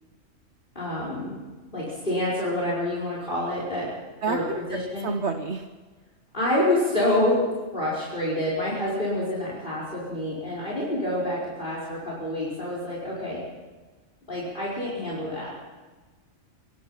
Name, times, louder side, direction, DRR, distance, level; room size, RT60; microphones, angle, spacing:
voice 1, 0.7-1.4 1.7-3.9 4.3-5.1 6.3-7.4 7.7-13.4 14.3-15.5, left 1 dB, 40° left, -6 dB, 5.3 m, -27 dB
voice 2, 4.2-5.7, right 4 dB, 60° right, 6 dB, 1.3 m, -30 dB
26.0 x 19.0 x 5.8 m, 1.3 s
omnidirectional pair, 1.3 m